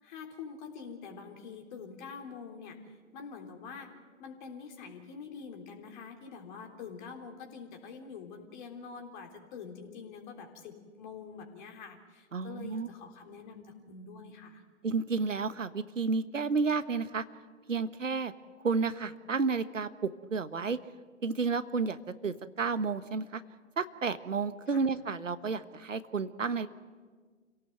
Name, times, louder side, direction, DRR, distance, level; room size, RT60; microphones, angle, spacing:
voice 1, 0.0-14.6 24.7-24.9, left 5 dB, 40° left, 4 dB, 3.5 m, -46 dB
voice 2, 12.3-12.9 14.8-17.2 17.7-18.3 18.6-20.8 21.2-23.4 23.8-26.7, right 4 dB, 80° right, 13 dB, 1.2 m, -31 dB
27.0 x 17.5 x 7.9 m, 1.5 s
figure-of-eight pair, 120°, 38 cm